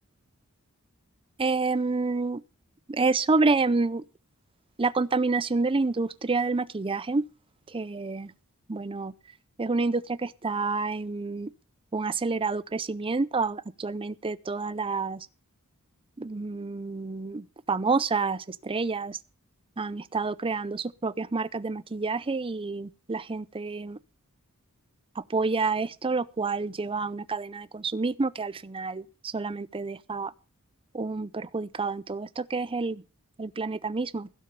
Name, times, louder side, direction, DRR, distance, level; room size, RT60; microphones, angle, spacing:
voice 1, 1.4-2.4 2.9-4.0 4.8-7.2 7.7-8.3 8.7-9.1 9.6-11.5 11.9-15.3 16.2-19.2 19.8-24.0 25.2-30.3 30.9-33.0 33.4-34.3, right 3 dB, 25° right, 0.5 m, -28 dB
16.0 x 6.3 x 6.9 m
head